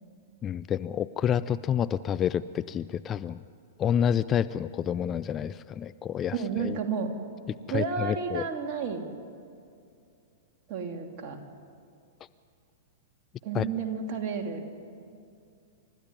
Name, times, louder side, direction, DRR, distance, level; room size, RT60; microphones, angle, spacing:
voice 1, 0.4-3.4 3.8-6.8 7.7-8.4 13.5-13.7, left 9 dB, 25° left, 14 dB, 0.5 m, -29 dB
voice 2, 6.3-7.1 7.7-9.1 10.7-11.4 13.4-14.6, right 5 dB, 40° right, 2 dB, 3.2 m, -31 dB
30.0 x 14.0 x 10.0 m, 2.4 s
figure-of-eight pair, 105°, 0 cm